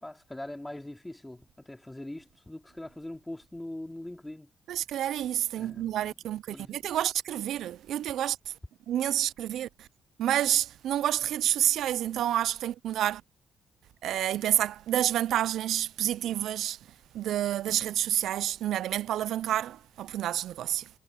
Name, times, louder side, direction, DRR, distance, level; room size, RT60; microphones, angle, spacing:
voice 1, 0.0-4.5 5.6-6.1 6.5-6.7, left 1 dB, 10° left, 3.1 m, -42 dB
voice 2, 4.7-8.5 8.9-9.9 10.2-13.2 14.0-16.8 17.1-20.9, right 12 dB, 75° right, 0.5 m, -29 dB
cardioid pair, 90°, 0 cm